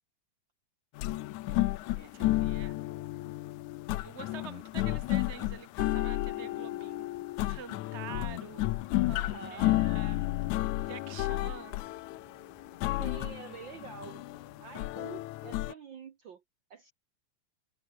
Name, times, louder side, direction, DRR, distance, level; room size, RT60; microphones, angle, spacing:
sound 1, 1.0-15.7, left 17 dB, 75° left, 1.8 m, -32 dB
voice 1, 2.0-2.7 4.0-7.1 7.4-8.8 9.5-10.3 10.9-11.8, right 7 dB, 30° right, 1.2 m, -46 dB
sound 2, 6.3-15.5, right 1 dB, 10° right, 4.8 m, -65 dB
voice 2, 9.1-9.8 12.9-14.2 14.6-16.4 16.7-16.9, right 7 dB, 75° right, 1.0 m, -47 dB
omnidirectional pair, 4.2 m